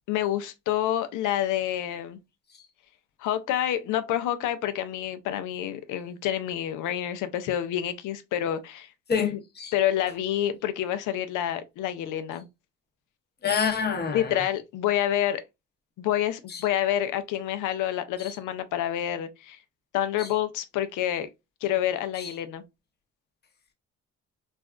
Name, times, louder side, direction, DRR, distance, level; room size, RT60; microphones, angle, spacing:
voice 1, 0.1-2.2 3.2-8.9 9.2-9.4 9.7-12.5 14.1-15.4 16.0-19.6 19.9-21.3 21.6-22.6, left 11 dB, 80° left, 0.5 m, -28 dB
voice 2, 9.1-9.7 13.4-14.4 16.5-16.6 18.2-18.4 20.2-20.3 22.2-22.3, left 6 dB, 35° left, 0.8 m, -28 dB
3.3 x 2.2 x 2.3 m
cardioid pair, 90°, 30 cm